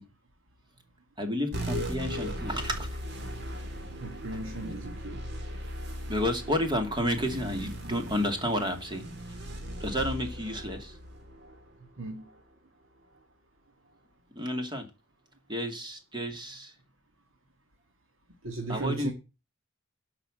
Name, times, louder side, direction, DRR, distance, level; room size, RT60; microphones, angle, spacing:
voice 1, 1.2-2.9 6.1-9.1 9.8-11.0 14.4-14.9 15.5-16.7 18.7-19.1, equal, 20° right, 2.4 m, -31 dB
sound 1, 1.5-12.4, equal, 55° right, 3.0 m, -38 dB
voice 2, 4.0-5.2 12.0-12.2 18.4-19.1, right 2 dB, 70° right, 2.0 m, -36 dB
11.5 x 5.9 x 8.9 m
head